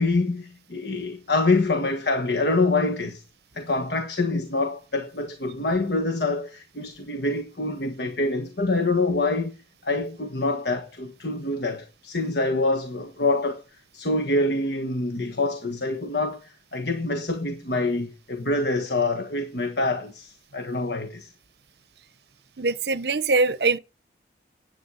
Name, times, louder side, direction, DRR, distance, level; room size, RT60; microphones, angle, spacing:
voice 1, 0.0-3.2 3.5-9.6 9.8-13.6 13.9-21.3, left 2 dB, 65° left, 1.5 m, -26 dB
voice 2, 22.6-23.8, right 3 dB, 65° right, 0.8 m, -22 dB
10.0 x 8.8 x 6.3 m
head